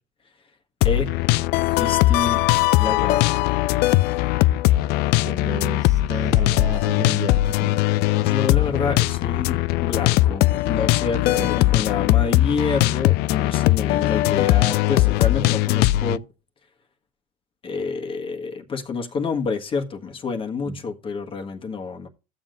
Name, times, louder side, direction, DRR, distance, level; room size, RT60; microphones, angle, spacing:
sound 1, 0.8-16.2, left 17 dB, 55° left, 0.5 m, -20 dB
voice 1, 1.7-2.4 2.8-3.3 8.1-16.2 17.6-22.1, left 4 dB, 30° left, 1.5 m, -28 dB
voice 2, 5.2-7.9 11.3-11.8 20.7-20.8, right 4 dB, 15° right, 1.0 m, -33 dB
14.5 x 7.4 x 2.6 m
supercardioid pair, 110°, 19 cm